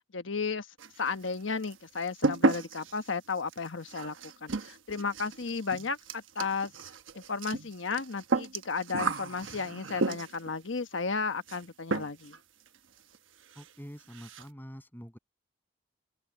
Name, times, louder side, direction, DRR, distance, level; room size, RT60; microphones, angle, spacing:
voice 1, 0.1-0.7 1.0-4.2 4.4-6.7 7.1-12.4, left 4 dB, 80° left, 1.2 m, -34 dB
sound 1, 0.8-1.3 1.6-10.5 11.5-11.6 11.9-12.4 12.7-12.8 13.1-13.2 13.5-13.7 14.0-14.5, right 3 dB, 85° right, 1.1 m, -33 dB
voice 2, 13.6-15.2, equal, 10° left, 7.2 m, -46 dB
open air
head